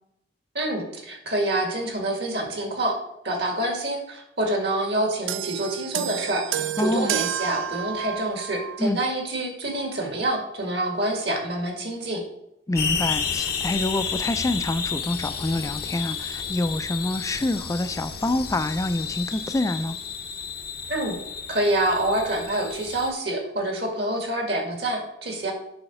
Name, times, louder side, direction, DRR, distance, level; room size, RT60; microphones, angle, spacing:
voice 1, 0.5-3.0 3.2-12.2 20.9-21.2 21.5-25.5, right 1 dB, 65° right, 2 dB, 2.1 m, -27 dB
sound 1, 5.3-8.9 9.8-9.9, right 11 dB, 90° right, 0.4 m, -30 dB
voice 2, 6.8-7.1 8.8-9.0 12.7-20.0, left 2 dB, 15° left, 10 dB, 0.3 m, -26 dB
sound 2, 12.7-23.1, left 6 dB, 55° left, 0.7 m, -31 dB
7.0 x 5.7 x 5.4 m, 0.82 s
head